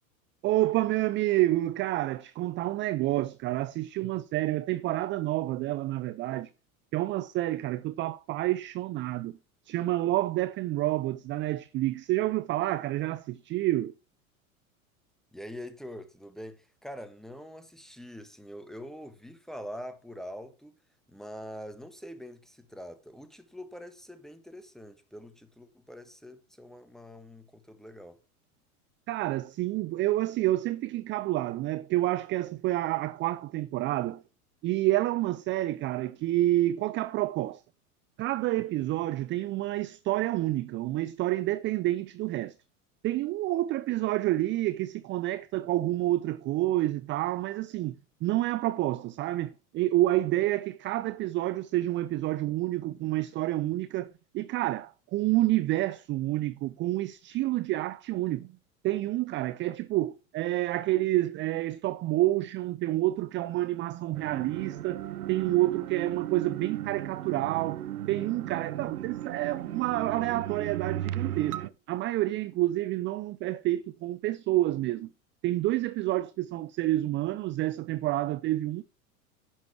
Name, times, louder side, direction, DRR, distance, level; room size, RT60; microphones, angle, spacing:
voice 1, 0.4-6.5 6.9-9.3 9.7-13.9 29.1-34.2 34.6-37.6 38.2-42.5 43.0-58.5 58.8-65.0 65.3-75.1 75.4-78.8, right 16 dB, 30° right, 0.4 m, -29 dB
voice 2, 15.3-20.7 21.1-28.2, equal, ahead, 1.5 m, -44 dB
sound 1, 64.1-71.7, right 12 dB, 85° right, 0.7 m, -36 dB
11.0 x 6.4 x 4.7 m
hypercardioid pair, 95°, 43 cm